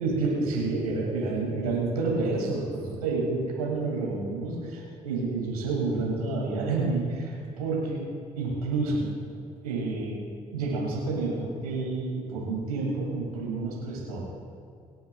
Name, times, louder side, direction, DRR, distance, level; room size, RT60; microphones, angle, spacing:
voice 1, 0.0-8.1 8.4-9.1 9.6-10.2 10.5-14.2, right 3 dB, 85° right, -3 dB, 2.2 m, -29 dB
26.0 x 9.3 x 2.3 m, 2.4 s
figure-of-eight pair, 45°, 19 cm